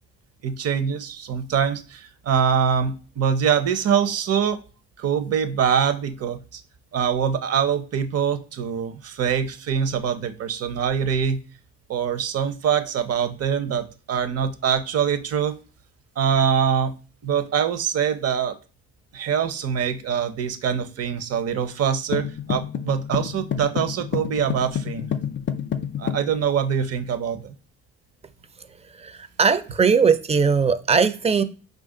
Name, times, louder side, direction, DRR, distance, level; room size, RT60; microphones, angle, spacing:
voice 1, 0.4-4.6 5.0-6.6 6.9-11.4 11.9-15.6 16.2-16.9 17.2-18.6 19.1-25.1 26.0-27.5, right 7 dB, 55° right, 10 dB, 0.7 m, -24 dB
sound 1, 22.1-26.3, left 8 dB, 40° left, 0.4 m, -28 dB
voice 2, 28.9-31.4, right 5 dB, 20° right, 11 dB, 0.5 m, -19 dB
4.7 x 2.5 x 3.7 m, 0.36 s
cardioid pair, 90°, 30 cm